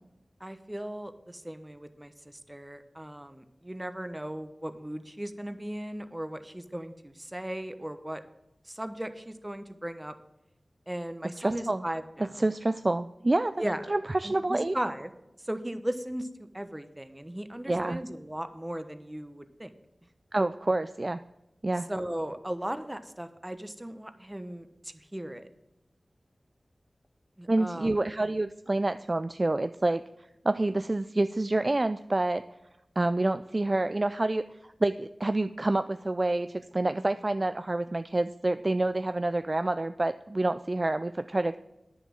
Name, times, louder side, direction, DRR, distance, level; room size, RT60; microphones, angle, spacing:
voice 1, 0.4-8.2 8.7-10.1 10.9-12.5 13.6-13.8 14.2-15.1 15.4-16.3 16.5-19.7 21.9-25.5 27.4-27.9, right 1 dB, 15° right, 10 dB, 0.9 m, -37 dB
voice 2, 11.4-11.8 12.2-13.5 13.9-14.7 17.7-18.0 20.3-21.2 21.6-21.9 27.5-30.0 30.4-32.4 33.0-34.4 34.8-41.6, right 2 dB, 35° right, 11 dB, 0.3 m, -27 dB
10.0 x 7.1 x 7.3 m, 0.91 s
wide cardioid pair, 70°, 0 cm